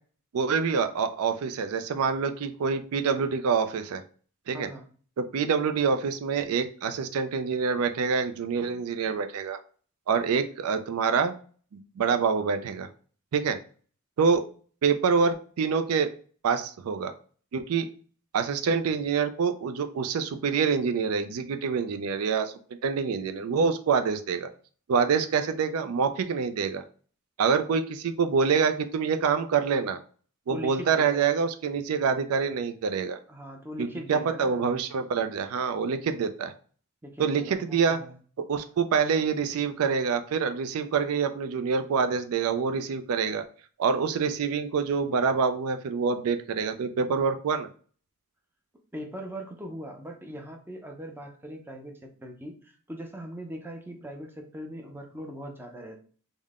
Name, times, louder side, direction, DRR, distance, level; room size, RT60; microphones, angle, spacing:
voice 1, 0.3-4.0 4.5-4.7 5.2-9.6 10.1-11.3 11.7-12.9 13.3-13.6 14.2-14.4 14.8-16.1 16.4-17.1 17.5-17.9 18.3-22.5 22.8-24.5 24.9-26.8 27.4-30.0 30.5-33.2 33.8-36.5 37.2-38.0 38.5-43.4 43.8-47.7, right 5 dB, 80° right, 8 dB, 0.4 m, -26 dB
voice 2, 4.5-4.9 30.5-31.3 33.3-34.8 37.0-38.2 44.1-44.3 48.9-56.0, equal, 10° right, 2 dB, 0.5 m, -40 dB
3.6 x 2.1 x 3.5 m, 0.42 s
head